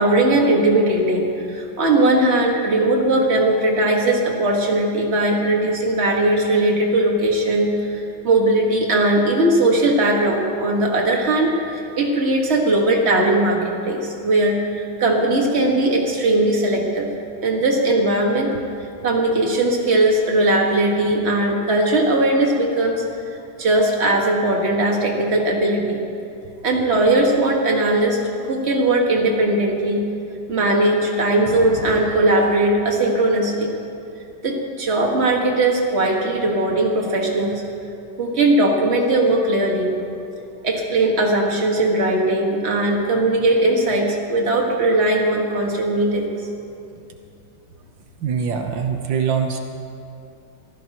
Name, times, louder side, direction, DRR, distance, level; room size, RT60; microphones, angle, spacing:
voice 1, 0.0-17.1 17.4-18.5 19.0-23.0 23.6-26.0 26.6-30.0 30.5-33.7 34.4-37.6 38.2-39.9 40.6-46.4, right 1 dB, 35° right, -1 dB, 1.9 m, -19 dB
voice 2, 48.2-49.6, right 7 dB, 80° right, 4 dB, 1.7 m, -23 dB
24.5 x 15.0 x 3.0 m, 2.6 s
omnidirectional pair, 2.0 m